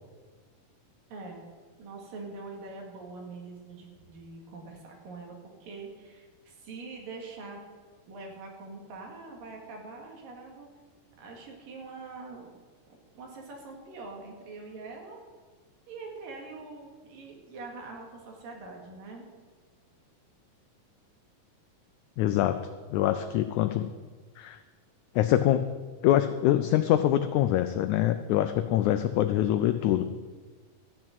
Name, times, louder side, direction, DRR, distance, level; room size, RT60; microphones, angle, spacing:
voice 1, 1.1-1.4 1.8-7.7 8.1-10.7 11.2-12.6 13.2-15.2 15.9-19.3, right 3 dB, 80° right, 0 dB, 3.7 m, -44 dB
voice 2, 22.2-22.6 22.9-23.9 24.4-24.6 25.2-25.6 26.0-30.0, left 12 dB, 85° left, 9 dB, 1.7 m, -24 dB
13.5 x 6.1 x 8.9 m, 1.5 s
omnidirectional pair, 4.0 m